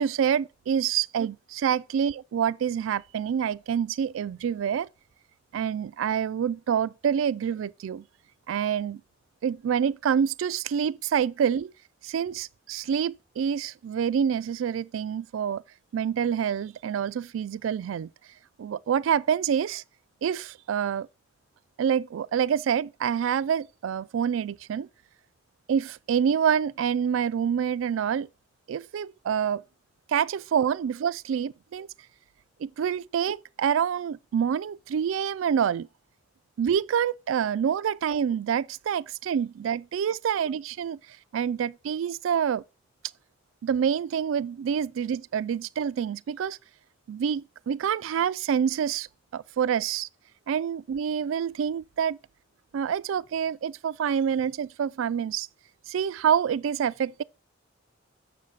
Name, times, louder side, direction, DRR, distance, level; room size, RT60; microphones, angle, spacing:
voice 1, 0.0-4.9 5.5-8.0 8.5-9.0 9.4-11.7 12.0-15.6 15.9-18.1 18.6-19.8 20.2-21.1 21.8-24.9 25.7-28.3 28.7-29.6 30.1-31.9 32.6-35.9 36.6-41.0 41.3-42.6 43.6-46.6 47.1-49.1 49.3-50.1 50.5-52.2 52.7-55.5 55.9-57.2, right 8 dB, 80° right, 0.3 m, -27 dB
7.4 x 6.4 x 3.9 m
head